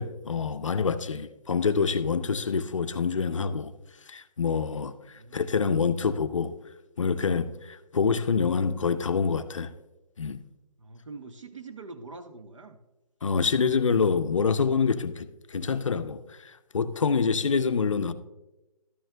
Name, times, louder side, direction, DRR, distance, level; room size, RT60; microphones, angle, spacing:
voice 1, 0.0-3.7 4.1-6.5 7.0-9.7 10.2-10.4 13.2-18.1, left 5 dB, 50° left, 0.5 m, -26 dB
voice 2, 5.1-5.7 10.8-12.8, right 3 dB, 50° right, 0.6 m, -44 dB
12.5 x 9.1 x 2.2 m
hypercardioid pair, 175°, 20 cm